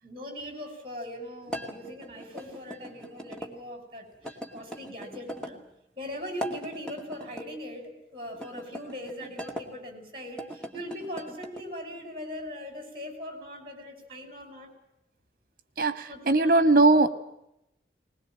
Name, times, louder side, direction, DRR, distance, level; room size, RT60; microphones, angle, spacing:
voice 1, 0.0-5.6 6.0-14.7 16.1-16.6, equal, 30° right, 6 dB, 6.0 m, -40 dB
sound 1, 1.5-3.5 4.2-5.6 6.3-7.5 8.3-9.7 10.3-11.6, equal, 5° left, 2.2 m, -40 dB
voice 2, 15.8-17.1, right 2 dB, 50° right, 11 dB, 1.8 m, -20 dB
21.0 x 20.5 x 9.0 m, 0.84 s
head